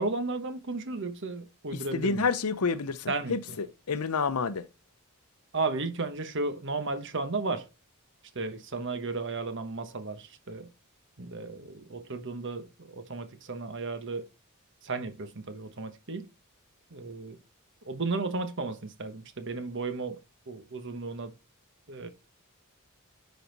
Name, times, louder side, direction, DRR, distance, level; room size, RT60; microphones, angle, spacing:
voice 1, 0.0-2.3 3.1-3.6 5.5-7.7 8.3-10.7 11.2-14.2 14.8-16.3 16.9-17.4 17.8-20.2 20.5-21.3 21.9-22.1, right 3 dB, 55° right, 1.2 m, -34 dB
voice 2, 1.7-4.6, left 5 dB, 85° left, 0.7 m, -29 dB
10.5 x 4.2 x 4.0 m
head